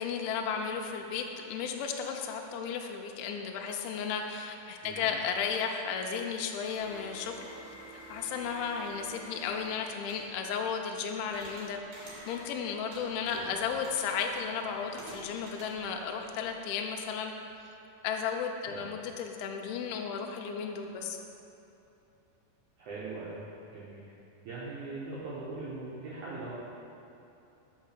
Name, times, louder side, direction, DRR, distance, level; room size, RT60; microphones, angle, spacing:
voice 1, 0.0-7.5 8.1-17.3 18.0-21.2, left 6 dB, 90° left, 3 dB, 2.2 m, -34 dB
voice 2, 4.8-5.2 13.3-13.6 18.7-18.8 22.8-23.4 23.7-24.1 24.4-26.5, right 3 dB, 80° right, -7 dB, 1.7 m, -41 dB
sound 1, 6.8-10.3 11.3-12.6 12.9-16.5, right 1 dB, 60° right, 2.1 m, -50 dB
6.1 x 5.5 x 6.6 m, 2.8 s
omnidirectional pair, 5.0 m